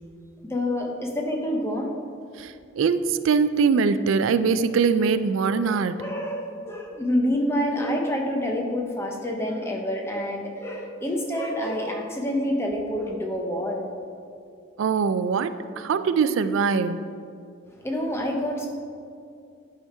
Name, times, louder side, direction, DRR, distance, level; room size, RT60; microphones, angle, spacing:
voice 1, 0.5-1.9 5.4-5.6 6.0-13.9 17.8-18.7, equal, 15° left, 1 dB, 0.8 m, -27 dB
voice 2, 2.4-6.0 14.8-17.0, right 5 dB, 80° right, 12 dB, 0.3 m, -22 dB
9.8 x 5.0 x 4.4 m, 2.4 s
head